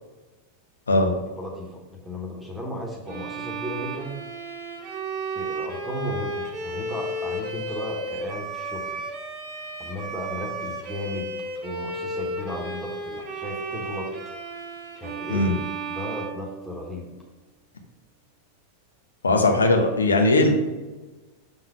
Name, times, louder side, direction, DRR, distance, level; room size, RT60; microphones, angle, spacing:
voice 1, 1.4-4.2 5.3-9.0 9.8-11.3 11.6-14.1 14.9-15.5 15.9-17.1, equal, 5° right, -2 dB, 1.3 m, -35 dB
Bowed string instrument, 3.1-17.2, right 2 dB, 40° right, 1.0 m, -33 dB
voice 2, 19.2-20.5, left 2 dB, 75° left, 3 dB, 0.9 m, -19 dB
6.3 x 3.9 x 5.0 m, 1.2 s
figure-of-eight pair, 90°, 0 cm